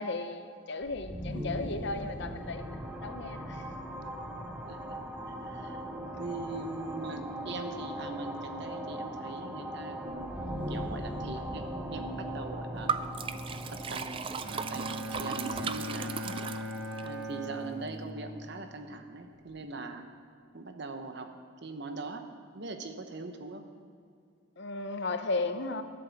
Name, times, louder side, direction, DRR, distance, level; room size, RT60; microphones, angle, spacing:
voice 1, 0.0-3.6 24.6-25.8, left 3 dB, 55° left, 9 dB, 0.7 m, -35 dB
sound 1, 0.8-18.5, equal, 5° right, 0.8 m, -40 dB
voice 2, 4.7-5.0 5.3-5.8 6.1-12.9 13.7-14.2 14.5-16.3 17.0-20.0 20.5-21.3 21.6-22.2 22.5-23.6, right 3 dB, 55° right, 6 dB, 0.9 m, -41 dB
Liquid, 12.9-17.1, right 6 dB, 25° right, 0.3 m, -36 dB
Bowed string instrument, 14.4-18.5, equal, 75° right, 1.2 m, -39 dB
13.0 x 7.7 x 7.1 m, 2.3 s
head